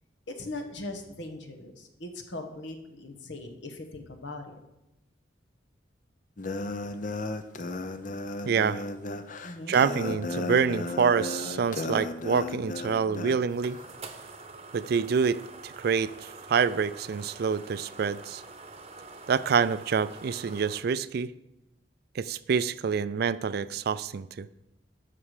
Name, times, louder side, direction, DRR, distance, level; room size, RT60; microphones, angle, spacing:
voice 1, 0.3-4.6 9.4-9.8, left 2 dB, 75° left, 6 dB, 1.3 m, -40 dB
sound 1, 6.4-13.4, left 2 dB, 45° left, 0.6 m, -34 dB
voice 2, 8.4-8.8 9.7-13.8 14.7-18.4 19.3-21.3 22.2-24.5, right 6 dB, 60° right, 17 dB, 0.4 m, -27 dB
sound 2, 13.4-20.8, right 3 dB, 35° right, 0.9 m, -46 dB
12.5 x 6.1 x 4.9 m, 0.91 s
head